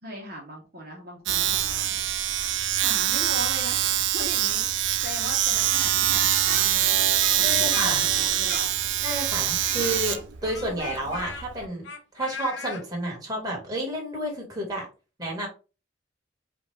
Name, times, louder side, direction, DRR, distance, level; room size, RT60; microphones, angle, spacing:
voice 1, 0.0-2.0 2.8-8.8 9.7-9.8, equal, 55° right, -2 dB, 1.1 m, -39 dB
Domestic sounds home sounds, 1.3-11.6, right 11 dB, 80° right, 0.5 m, -24 dB
Speech, 6.1-9.0 9.6-12.8, left 5 dB, 80° left, 0.8 m, -39 dB
voice 2, 7.4-8.0 9.0-10.2 10.4-11.9 12.1-14.9 15.2-15.5, right 1 dB, 20° right, -2 dB, 1.8 m, -30 dB
5.0 x 2.4 x 3.4 m, 0.32 s
head